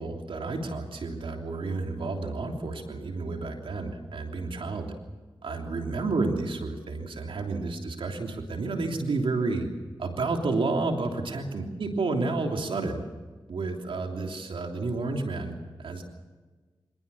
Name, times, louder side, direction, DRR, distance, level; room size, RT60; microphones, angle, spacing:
voice 1, 0.0-4.9 5.4-9.7 10.0-13.0 13.5-16.0, right 3 dB, 80° right, 3 dB, 3.2 m, -30 dB
25.0 x 19.5 x 7.1 m, 1.3 s
cardioid pair, 45°, 9 cm